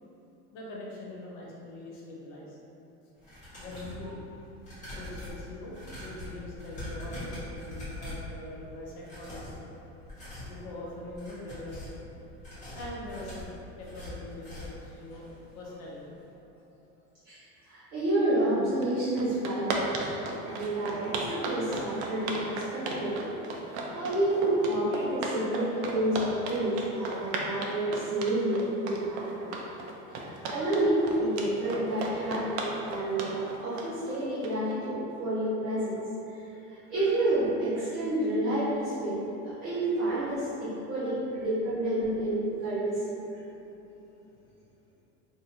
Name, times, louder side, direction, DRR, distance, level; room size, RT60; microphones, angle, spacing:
voice 1, 0.5-2.6 3.6-4.2 4.9-9.7 10.5-12.0 12.7-16.7 43.5-44.6, left 1 dB, 55° left, -4 dB, 0.8 m, -43 dB
sound 1, 3.2-4.0 4.6-8.3 9.0-9.6 10.0-10.6 11.0-12.0 12.4-14.9 15.2-15.3 15.7-15.8, left 1 dB, 20° left, 1.1 m, -42 dB
voice 2, 17.2-23.3 23.9-29.5 30.1-39.2 39.4-43.1, right 1 dB, 35° right, -15 dB, 1.3 m, -29 dB
sound 2, 18.8-18.9 19.2-34.7, right 3 dB, 70° right, 0.5 m, -35 dB
2.7 x 2.5 x 4.1 m, 2.9 s
cardioid pair, 180°, 34 cm